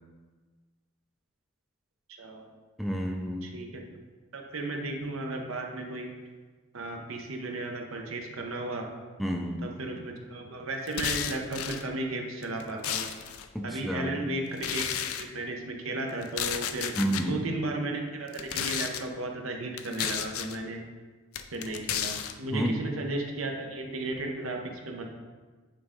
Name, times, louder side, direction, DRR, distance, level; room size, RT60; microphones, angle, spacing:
voice 1, 2.8-3.6 9.2-9.7 13.5-14.4 17.0-17.5 22.5-22.8, equal, ahead, 1 dB, 0.4 m, -30 dB
voice 2, 3.4-3.8 4.3-6.1 6.7-8.9 9.6-13.1 13.6-14.9 15.2-20.8 21.5-25.1, right 2 dB, 70° right, 2 dB, 0.9 m, -34 dB
sound 1, 10.9-11.8 12.4-13.5 14.6-15.2 16.2-17.2 18.3-19.0 19.8-20.6 21.3-22.3, left 9 dB, 85° left, 0.4 m, -32 dB
8.7 x 3.7 x 3.7 m, 1.4 s
head